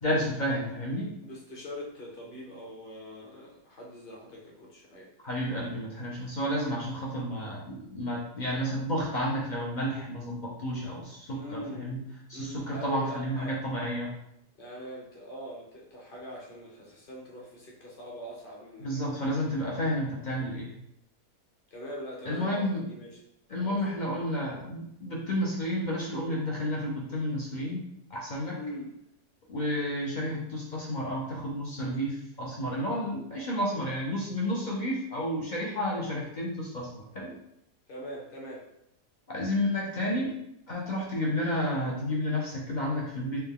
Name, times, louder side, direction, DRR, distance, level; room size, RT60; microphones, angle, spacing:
voice 1, 0.0-1.1 5.2-12.0 12.3-14.1 18.8-20.7 22.2-22.8 23.5-27.8 28.1-28.5 29.5-37.3 39.3-40.3 40.7-43.4, equal, 55° left, -4 dB, 0.5 m, -31 dB
voice 2, 1.2-5.1 11.3-12.0 12.3-13.6 14.6-19.6 21.7-23.2 23.6-23.8 28.6-28.9 37.9-38.6, equal, 40° left, -2 dB, 0.8 m, -42 dB
4.2 x 2.2 x 3.6 m, 0.79 s
omnidirectional pair, 1.7 m